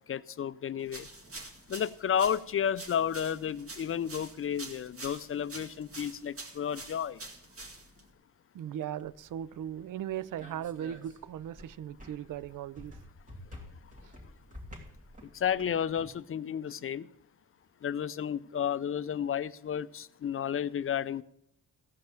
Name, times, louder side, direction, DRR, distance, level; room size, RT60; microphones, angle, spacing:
voice 1, 0.1-1.1 1.7-7.2 15.2-17.1 17.8-21.2, left 8 dB, 40° left, 0.5 m, -32 dB
sound 1, 0.9-8.1, right 2 dB, 40° right, 2.1 m, -46 dB
voice 2, 8.5-13.0 16.7-16.8, right 10 dB, 65° right, 0.5 m, -38 dB
sound 2, 9.0-16.1, left 1 dB, 20° right, 2.6 m, -51 dB
15.5 x 5.4 x 7.6 m
cardioid pair, 75°, 35 cm